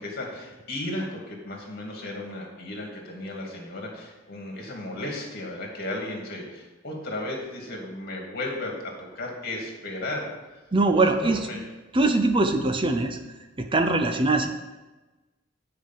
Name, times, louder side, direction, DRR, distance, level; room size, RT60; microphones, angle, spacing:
voice 1, 0.0-10.3 11.2-11.6, left 1 dB, 55° left, 0 dB, 2.4 m, -34 dB
voice 2, 10.7-11.5 11.9-13.2 13.6-14.5, right 2 dB, 25° right, 6 dB, 0.6 m, -22 dB
9.4 x 5.0 x 7.5 m, 1.2 s
head